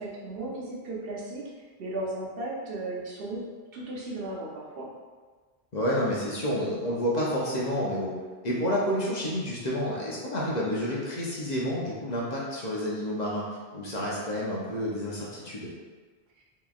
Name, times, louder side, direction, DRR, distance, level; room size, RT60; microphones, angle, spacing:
voice 1, 0.0-1.4 1.8-3.4 3.7-4.9, right 2 dB, 65° right, -4 dB, 0.9 m, -35 dB
voice 2, 5.7-8.1 8.4-13.4 13.7-15.7, equal, 50° left, -6 dB, 0.7 m, -29 dB
3.7 x 2.9 x 2.3 m, 1.4 s
omnidirectional pair, 1.1 m